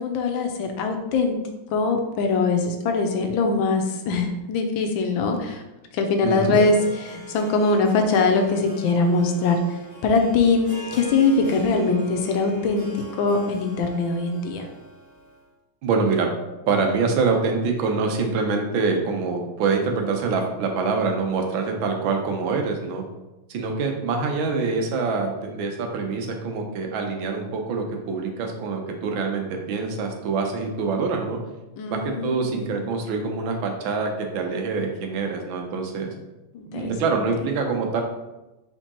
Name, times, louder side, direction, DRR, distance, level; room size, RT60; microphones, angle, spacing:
voice 1, 0.0-1.4 1.7-5.6 5.9-9.6 10.0-14.6 31.8-33.0 36.5-37.2, left 3 dB, 80° left, 4 dB, 1.4 m, -22 dB
voice 2, 6.2-6.6 15.8-16.3 16.7-23.0 23.5-31.4 31.9-36.1 36.7-38.0, right 4 dB, 90° right, 3 dB, 1.5 m, -25 dB
Harp, 6.4-15.4, right 1 dB, 25° left, 1.1 m, -40 dB
4.4 x 3.8 x 2.9 m, 1.0 s
omnidirectional pair, 2.1 m